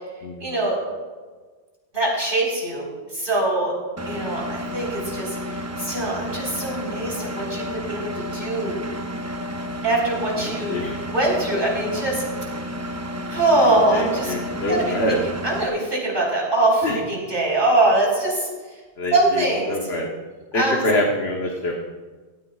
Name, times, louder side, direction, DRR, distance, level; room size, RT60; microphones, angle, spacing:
voice 1, 0.4-0.8 1.9-2.9 3.1-3.7 4.1-8.7 9.8-10.8 11.1-12.2 13.3-14.3 14.7-14.9 15.4-18.5 19.1-19.7 20.5-20.8, right 2 dB, 60° right, -4 dB, 4.3 m, -22 dB
Engine, 4.0-15.7, equal, 20° right, 0.5 m, -31 dB
voice 2, 10.4-11.0 13.9-15.2 16.8-17.0 19.0-20.1 20.5-21.7, left 1 dB, 85° left, -1 dB, 1.5 m, -25 dB
17.0 x 14.0 x 2.4 m, 1.4 s
omnidirectional pair, 1.0 m